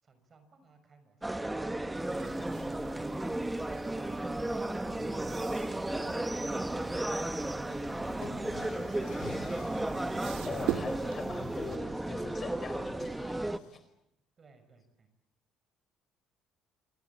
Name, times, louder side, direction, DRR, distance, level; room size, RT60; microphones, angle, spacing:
voice 1, 0.0-1.6 2.4-3.3 3.7-4.1 14.4-15.1, right 4 dB, 30° right, 9 dB, 6.2 m, -58 dB
sound 1, 1.2-13.6, right 1 dB, 5° right, 1.1 m, -34 dB
sound 2, 1.9-11.8, right 12 dB, 85° right, 1.6 m, -44 dB
sound 3, 7.4-7.5 8.2-13.8, left 8 dB, 85° left, 5.9 m, -51 dB
voice 2, 10.4-13.4 13.7-13.8, left 4 dB, 25° left, 11 dB, 4.4 m, -42 dB
28.5 x 24.0 x 8.6 m, 0.81 s
cardioid pair, 150°, 0 cm